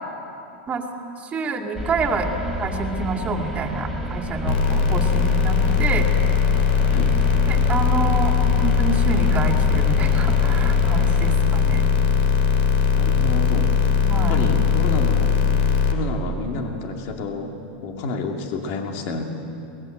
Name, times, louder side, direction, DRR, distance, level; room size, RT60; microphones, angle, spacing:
voice 1, 1.2-2.3 2.6-6.1 7.5-11.9 14.0-14.4, right 4 dB, 25° right, 2 dB, 2.4 m, -27 dB
sound 1, 1.7-11.3, equal, 5° left, 3.0 m, -30 dB
sound 2, 4.5-15.9, left 6 dB, 75° left, 2.3 m, -19 dB
voice 2, 12.9-13.7 14.2-15.4 15.9-17.6 17.8-19.2, left 3 dB, 55° left, 3 dB, 2.5 m, -29 dB
23.5 x 19.0 x 7.9 m, 2.7 s
supercardioid pair, 135°, 6 cm